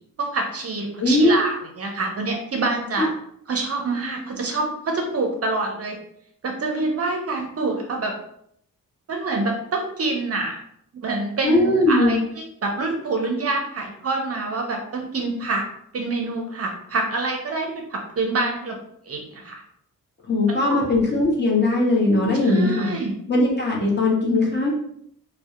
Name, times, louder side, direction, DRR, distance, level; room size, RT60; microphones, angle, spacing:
voice 1, 0.2-3.1 3.5-6.0 6.4-8.1 9.1-10.5 11.0-15.6 15.9-18.8 19.0-19.6 20.7-21.0 22.4-23.2, right 3 dB, 45° right, 2 dB, 0.5 m, -26 dB
voice 2, 1.0-1.3 3.0-3.1 11.4-12.2 20.3-22.9 23.3-24.7, left 2 dB, 30° left, -4 dB, 0.8 m, -19 dB
2.6 x 2.1 x 2.3 m, 0.69 s
cardioid pair, 80°, 34 cm